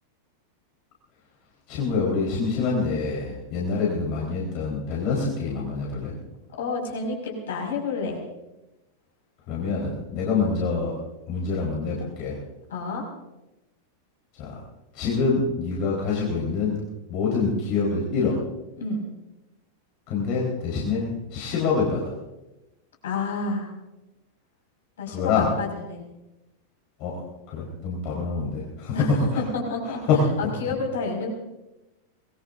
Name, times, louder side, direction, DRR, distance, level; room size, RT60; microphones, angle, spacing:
voice 1, 1.7-6.2 9.5-11.0 11.3-12.4 14.3-14.6 14.9-16.8 17.1-18.4 20.1-22.1 25.1-25.5 27.0-27.2 27.5-29.0 29.9-30.2, left 4 dB, 40° left, -4 dB, 4.3 m, -26 dB
voice 2, 6.5-8.2 12.7-13.0 18.8-19.1 23.0-23.7 25.0-26.0 28.9-29.1 29.5-30.0 30.4-31.3, left 3 dB, 60° left, -1 dB, 5.7 m, -30 dB
25.0 x 20.5 x 2.7 m, 0.99 s
figure-of-eight pair, 90°, 0 cm